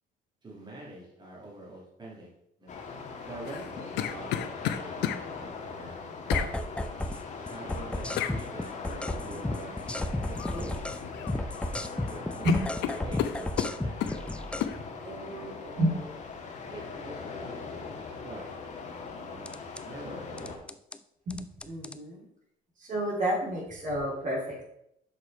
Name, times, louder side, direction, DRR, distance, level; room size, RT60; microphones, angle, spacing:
voice 1, 0.4-2.3 2.6-2.8 3.2-6.0 6.3-6.5 7.5-9.8 10.3-10.8 11.4-11.5 11.9-14.3 15.0-16.2 16.7-17.7 18.2-18.5 19.1-19.5 19.8-20.6, right 1 dB, 25° right, -4 dB, 2.8 m, -45 dB
sound 1, 2.7-20.6, left 4 dB, 45° left, 1.5 m, -41 dB
sound 2, 3.4-5.2 6.3-6.5 8.2-8.4 10.4-10.7 11.0-11.7 12.0-12.1 12.4-14.2 14.6-14.8, left 11 dB, 85° left, 0.6 m, -32 dB
sound 3, 6.3-7.2 7.5-11.0 11.3-14.7 19.4-19.8 20.4-21.0 21.3-22.0, left 1 dB, 5° left, 0.5 m, -33 dB
voice 2, 21.3-22.2 22.8-24.6, equal, 50° right, -2 dB, 2.7 m, -29 dB
6.4 x 4.9 x 5.6 m, 0.76 s
cardioid pair, 110°, 17 cm